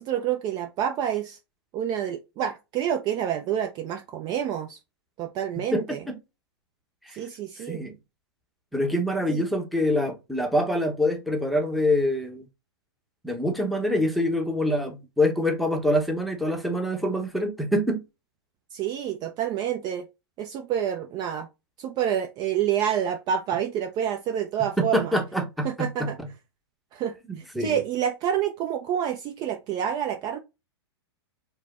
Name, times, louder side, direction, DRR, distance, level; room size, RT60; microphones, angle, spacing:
voice 1, 0.0-1.4 1.7-4.8 5.2-6.0 7.1-7.8 9.3-9.4 18.7-20.1 20.4-21.5 21.8-25.1 25.6-26.2 26.9-30.4, right 9 dB, 30° right, 0.5 m, -28 dB
voice 2, 5.7-6.2 7.0-7.2 7.7-7.9 8.7-12.5 13.2-18.0 24.8-26.1 27.5-27.8, left 1 dB, ahead, 0.8 m, -25 dB
4.8 x 2.1 x 4.2 m
hypercardioid pair, 125°, 13 cm